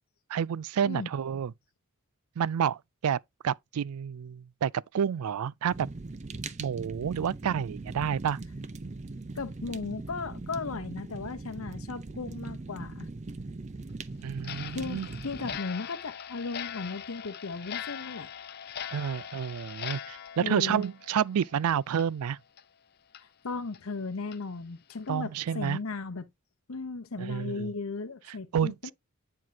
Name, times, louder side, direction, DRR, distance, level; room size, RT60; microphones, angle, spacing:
voice 1, 0.3-1.5 2.4-3.2 3.4-5.9 6.6-8.4 14.2-15.1 18.9-22.4 25.1-25.8 27.2-27.7 28.5-28.9, right 8 dB, 90° right, 0.4 m, -29 dB
Fire, 5.7-15.6, right 3 dB, 30° right, 0.5 m, -40 dB
voice 2, 9.3-13.1 14.7-18.3 20.4-20.8 23.2-26.3 26.7-28.9, left 4 dB, 75° left, 0.8 m, -36 dB
Clock, 14.4-21.6 21.9-22.1 22.6-22.7 23.1-23.2 23.7-23.8 24.3-24.4 24.9-25.1, left 9 dB, 45° left, 0.5 m, -41 dB
9.4 x 4.6 x 2.8 m
head